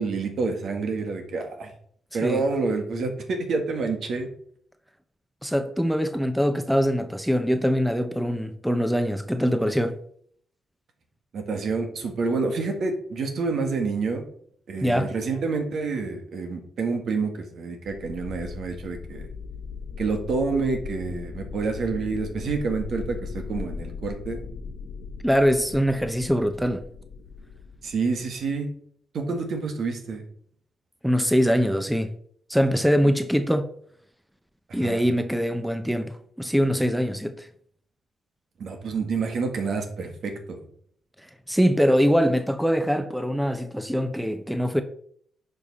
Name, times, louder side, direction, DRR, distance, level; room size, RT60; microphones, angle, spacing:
voice 1, 0.0-1.7 2.1-4.3 11.3-14.2 14.7-19.3 20.0-24.5 27.8-28.7 29.1-30.2 34.7-35.0 38.6-40.6, right 4 dB, 70° right, 1.9 m, -28 dB
voice 2, 5.4-10.0 14.8-15.1 25.2-26.8 31.0-32.1 32.5-33.7 34.7-37.5 41.5-44.8, equal, ahead, 0.7 m, -23 dB
sound 1, 17.9-28.5, left 5 dB, 90° left, 1.2 m, -38 dB
9.9 x 5.4 x 4.2 m
cardioid pair, 90°, 0 cm